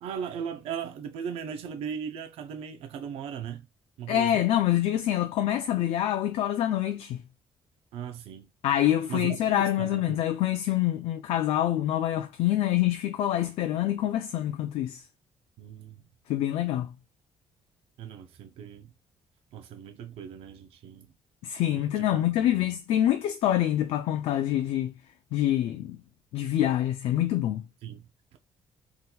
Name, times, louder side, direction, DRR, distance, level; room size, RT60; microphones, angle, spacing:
voice 1, 0.0-3.7 4.0-4.4 7.9-8.5 9.1-10.2 15.6-16.0 18.0-18.9 19.5-21.1 21.8-22.7 27.8-28.0, right 8 dB, 85° right, 0.4 m, -38 dB
voice 2, 4.1-7.2 8.6-15.0 16.3-16.9 21.4-24.9 25.3-26.0 26.3-27.6, left 12 dB, 85° left, 0.4 m, -26 dB
3.7 x 2.8 x 2.2 m
cardioid pair, 170°, 10 cm